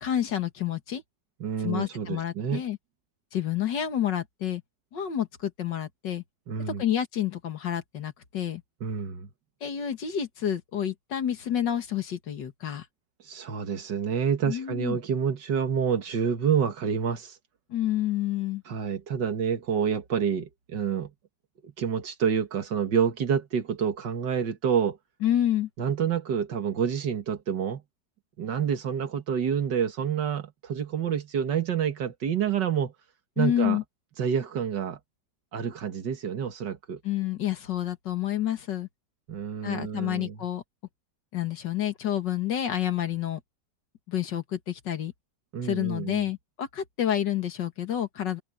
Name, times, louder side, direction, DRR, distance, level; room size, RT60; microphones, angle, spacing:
voice 1, 0.0-1.0 1.6-2.8 3.3-4.6 4.9-6.2 6.7-8.6 9.6-12.9 14.5-15.0 17.7-18.6 25.2-25.7 33.4-33.8 37.0-38.9 39.6-40.6 41.3-43.4 44.1-45.1 45.6-48.4, left 11 dB, 90° left, 2.3 m, -29 dB
voice 2, 1.4-2.6 6.5-6.8 8.8-9.3 13.2-17.4 18.7-21.1 21.6-25.0 25.8-27.8 28.4-32.9 33.4-33.8 34.2-35.0 35.5-37.0 39.3-40.4 45.5-46.3, right 7 dB, 80° right, 2.3 m, -28 dB
omnidirectional pair, 1.9 m